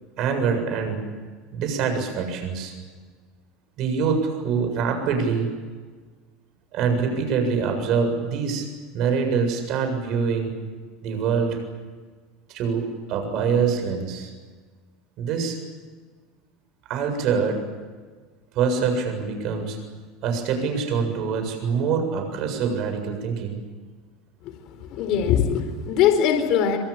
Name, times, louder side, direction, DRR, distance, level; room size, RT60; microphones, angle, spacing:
voice 1, 0.2-1.0 1.5-2.7 3.8-5.5 6.7-8.7 8.9-10.5 11.0-11.6 12.5-14.3 15.2-15.6 16.9-17.6 18.5-19.8 20.2-23.6, right 5 dB, 50° right, 5 dB, 7.5 m, -24 dB
voice 2, 24.8-26.8, left 8 dB, 50° left, 6 dB, 4.2 m, -21 dB
26.0 x 24.5 x 8.7 m, 1.4 s
supercardioid pair, 150°, 0 cm